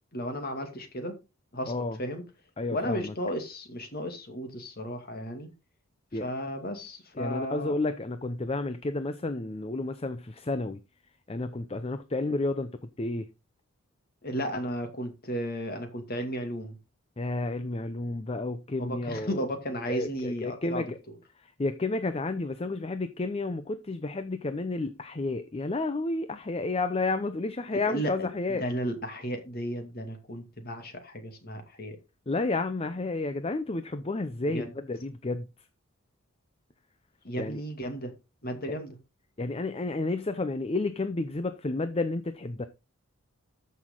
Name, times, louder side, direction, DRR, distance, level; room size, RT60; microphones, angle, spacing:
voice 1, 0.1-1.1 1.5-1.7 2.0-2.2 2.7-5.5 6.2-7.8 14.2-16.8 18.8-20.9 27.7-28.3 28.6-32.0 34.5-34.7 37.2-38.1 38.4-39.0, equal, 45° left, 2.4 m, -34 dB
voice 2, 1.7-2.0 2.6-3.1 6.1-6.3 7.2-10.8 11.3-12.7 13.0-13.3 17.2-19.4 19.7-21.0 21.4-28.6 32.3-35.5 37.4-37.6 38.7-38.8 39.4-42.7, left 2 dB, 25° left, 0.6 m, -31 dB
13.5 x 6.3 x 3.8 m
head